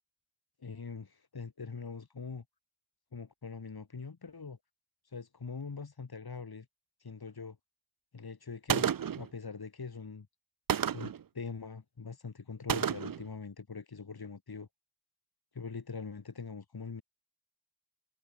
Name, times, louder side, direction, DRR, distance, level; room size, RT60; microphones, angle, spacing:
voice 1, 0.6-2.4 3.1-4.6 5.0-6.7 7.0-7.6 8.1-10.3 10.9-14.7 15.5-17.0, left 4 dB, 75° left, 2.6 m, -43 dB
Gunshot gunfire, 8.7-9.3 10.7-11.2 12.7-13.3, right 8 dB, 60° right, 0.6 m, -31 dB
wide cardioid pair, 65°, 38 cm